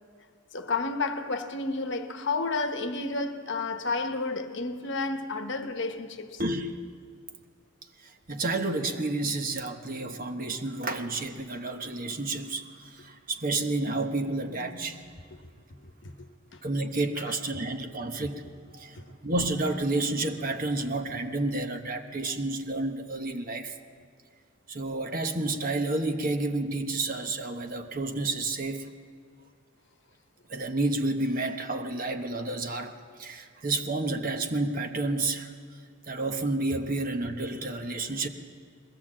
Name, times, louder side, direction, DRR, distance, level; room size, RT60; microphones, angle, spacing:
voice 1, 0.5-6.4 16.5-16.6, left 3 dB, 55° left, 1.1 m, -31 dB
voice 2, 6.4-6.7 8.0-15.2 16.6-18.4 18.7-23.8 24.7-28.9 30.5-35.5 36.1-38.3, right 2 dB, 40° right, 1.0 m, -30 dB
21.5 x 16.0 x 7.5 m
head